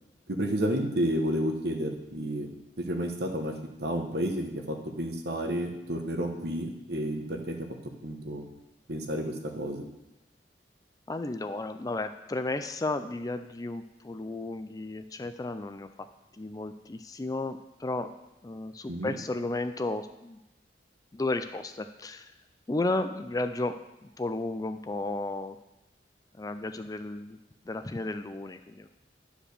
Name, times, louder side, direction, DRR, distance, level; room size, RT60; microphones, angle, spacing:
voice 1, 0.3-2.5 2.9-3.5 3.8-7.5 8.0-8.5 8.9-9.8 18.9-19.2, equal, 65° right, 4 dB, 1.3 m, -31 dB
voice 2, 11.1-15.9 16.3-18.1 18.4-20.4 21.1-22.3 22.7-25.6 26.4-27.4 27.6-28.9, left 2 dB, 20° left, 9 dB, 0.4 m, -33 dB
10.5 x 5.0 x 6.6 m, 0.94 s
head